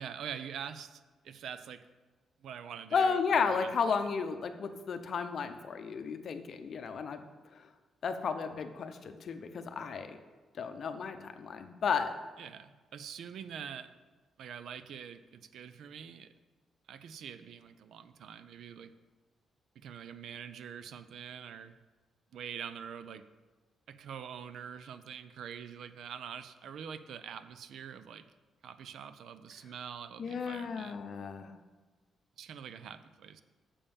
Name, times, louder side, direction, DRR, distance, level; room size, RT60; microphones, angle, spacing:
voice 1, 0.0-1.8 2.4-3.2 3.6-3.7 12.4-13.9 14.4-16.3 16.9-18.9 19.8-21.8 22.3-23.2 23.9-28.3 28.6-31.0 32.4-33.4, right 8 dB, 70° right, 12 dB, 0.4 m, -45 dB
voice 2, 2.9-7.2 7.5-7.6 8.0-10.2 10.6-12.1 30.2-31.5, left 5 dB, 50° left, 8 dB, 0.7 m, -33 dB
6.9 x 5.3 x 7.1 m, 1.3 s
cardioid pair, 145°, 0 cm